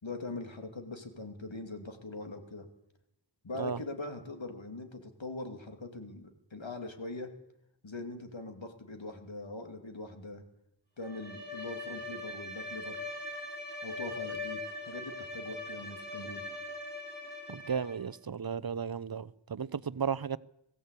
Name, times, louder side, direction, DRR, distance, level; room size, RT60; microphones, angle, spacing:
voice 1, 0.0-2.7 3.4-7.3 7.8-10.4 11.0-13.0 13.8-14.6 14.8-16.4, left 2 dB, 85° left, 2.7 m, -42 dB
Bowed string instrument, 11.0-18.1, left 2 dB, 25° left, 5.9 m, -41 dB
voice 2, 17.5-20.4, right 6 dB, 55° right, 0.7 m, -34 dB
21.0 x 15.5 x 8.3 m
wide cardioid pair, 45°, 44 cm